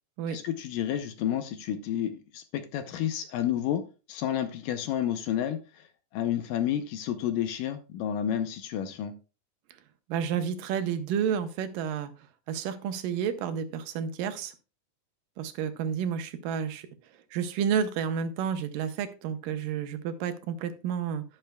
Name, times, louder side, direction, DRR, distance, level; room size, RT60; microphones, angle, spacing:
voice 1, 0.3-3.8 4.1-5.9 6.1-9.1, left 10 dB, 75° left, 9 dB, 2.2 m, -30 dB
voice 2, 10.1-12.1 12.5-14.5 15.4-16.9 17.3-21.2, right 8 dB, 75° right, 9 dB, 2.4 m, -30 dB
11.0 x 10.0 x 2.3 m, 0.32 s
omnidirectional pair, 4.1 m